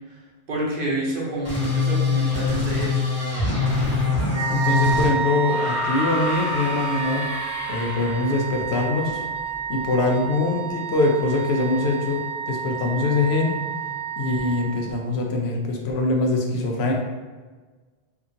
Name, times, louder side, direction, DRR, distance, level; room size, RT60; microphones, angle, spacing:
voice 1, 0.5-3.0, right 1 dB, 65° right, -3 dB, 0.8 m, -28 dB
sound 1, 1.4-5.1, left 4 dB, 15° left, 1.1 m, -23 dB
Wind instrument woodwind instrument, 4.3-15.1, right 6 dB, 30° right, 0.8 m, -30 dB
voice 2, 4.5-7.3 7.7-9.2 9.7-12.2 12.5-13.6 14.2-16.9, left 3 dB, 90° left, 1 dB, 0.8 m, -23 dB
sound 2, 5.5-8.5 9.8-9.9, left 1 dB, 55° left, 0.6 m, -31 dB
2.8 x 2.5 x 2.6 m, 1.4 s
omnidirectional pair, 1.0 m